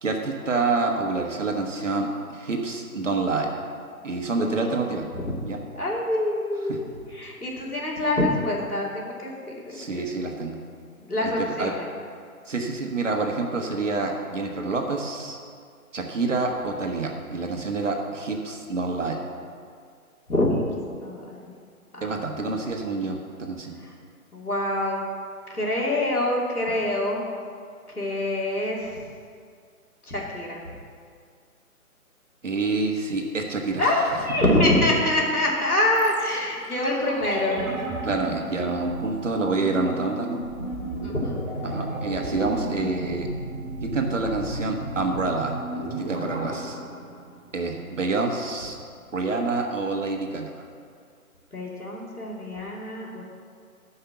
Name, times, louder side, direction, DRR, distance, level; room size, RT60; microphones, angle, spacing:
voice 1, 0.0-3.5 4.0-5.1 5.4-5.6 6.7-6.8 9.7-10.6 11.2-11.7 12.5-15.4 15.9-19.2 22.0-23.8 32.4-34.0 38.0-40.4 41.6-43.3 43.8-46.8 47.5-48.8 49.1-50.6, right 3 dB, 55° right, 2 dB, 1.5 m, -27 dB
voice 2, 5.7-6.9 7.1-10.1 11.1-11.9 20.3-20.6 21.0-21.4 21.9-22.2 23.8-23.9 24.3-25.0 25.5-27.3 27.9-29.0 30.1-30.6 33.8-37.7 41.0-41.5 51.5-53.2, left 1 dB, 80° left, -3 dB, 2.8 m, -25 dB
sound 1, 35.9-47.9 48.2-48.3, right 1 dB, 25° right, 2.2 m, -34 dB
13.5 x 5.7 x 6.0 m, 2.2 s
figure-of-eight pair, 140°, 44 cm